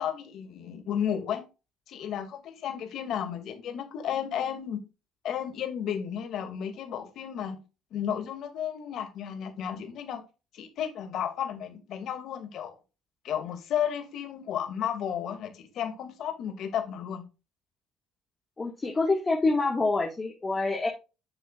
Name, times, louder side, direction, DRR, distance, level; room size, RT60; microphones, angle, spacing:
voice 1, 0.0-1.4 1.9-4.8 5.2-7.6 7.9-10.2 10.5-12.8 13.2-17.2, left 9 dB, 60° left, 2.7 m, -33 dB
voice 2, 18.6-20.9, left 3 dB, 25° left, 2.2 m, -26 dB
9.0 x 7.9 x 2.6 m
cardioid pair, 100°, 0 cm